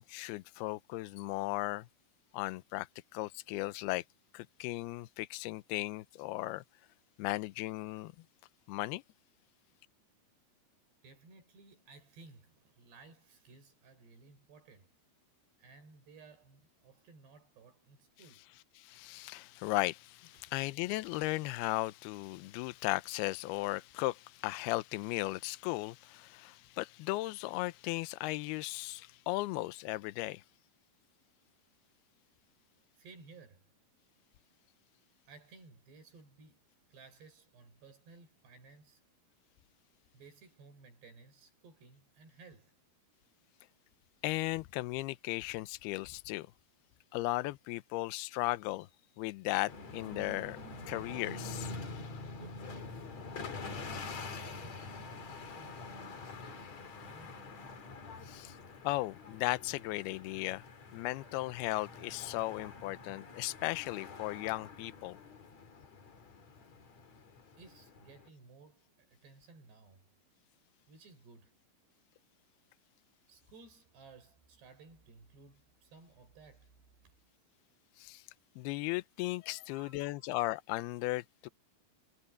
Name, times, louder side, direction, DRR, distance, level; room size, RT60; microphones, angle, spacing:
voice 1, 0.0-1.9 2.3-4.0 4.3-6.6 7.2-8.1 8.7-9.0 18.8-30.4 44.2-46.5 47.1-48.9 49.2-51.7 58.2-58.6 58.8-60.7 60.9-65.2 78.0-78.2 78.6-81.5, left 19 dB, 80° left, 2.6 m, -36 dB
voice 2, 11.0-14.9 15.6-18.4 20.4-20.5 33.0-33.7 35.3-36.6 36.9-39.0 40.1-42.8 52.3-53.1 53.6-57.5 67.6-70.0 70.9-71.6 73.3-77.1 79.6-80.3, right 4 dB, 85° right, 8.3 m, -58 dB
sound 1, 49.7-68.3, left 3 dB, 45° left, 3.9 m, -46 dB
omnidirectional pair, 4.7 m